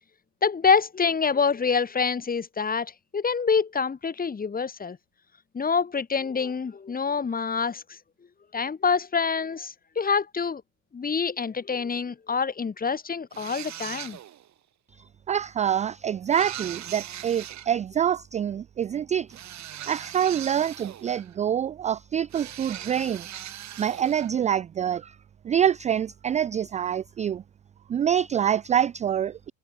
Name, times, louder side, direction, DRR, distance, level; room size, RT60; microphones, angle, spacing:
voice 1, 0.4-5.0 5.5-8.0 8.5-10.6 10.9-14.2, left 5 dB, 20° left, 3.0 m, -26 dB
sound 1, 13.3-14.5 16.3-17.7 19.3-21.4 22.3-24.3, right 11 dB, 45° right, 5.6 m, -40 dB
voice 2, 15.3-19.3 19.9-23.3 23.8-25.2 25.4-27.4 27.9-29.5, right 9 dB, 20° right, 0.4 m, -26 dB
supercardioid pair, 95°, 39 cm